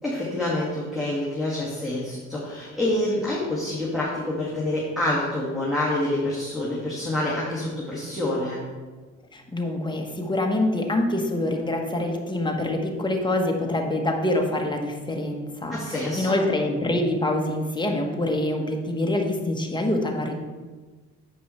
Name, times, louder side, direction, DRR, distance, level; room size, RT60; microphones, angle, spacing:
voice 1, 0.0-8.6 15.7-16.4, left 1 dB, ahead, -7 dB, 2.0 m, -27 dB
voice 2, 9.3-20.3, left 1 dB, 15° left, 1 dB, 1.2 m, -25 dB
7.8 x 5.4 x 4.3 m, 1.4 s
cardioid pair, 90°, 30 cm